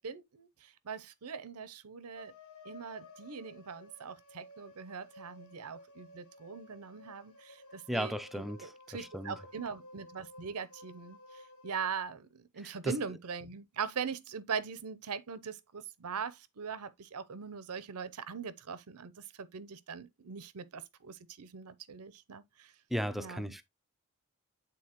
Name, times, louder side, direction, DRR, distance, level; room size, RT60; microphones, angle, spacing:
voice 1, 0.0-2.3 2.6-22.7 23.2-23.5, right 6 dB, 85° right, 0.7 m, -41 dB
sound 1, 2.1-11.9, left 2 dB, 80° left, 2.1 m, -54 dB
voice 2, 7.9-8.7 9.0-9.3 12.8-13.0 22.9-23.6, equal, ahead, 0.4 m, -35 dB
8.6 x 4.0 x 2.9 m
head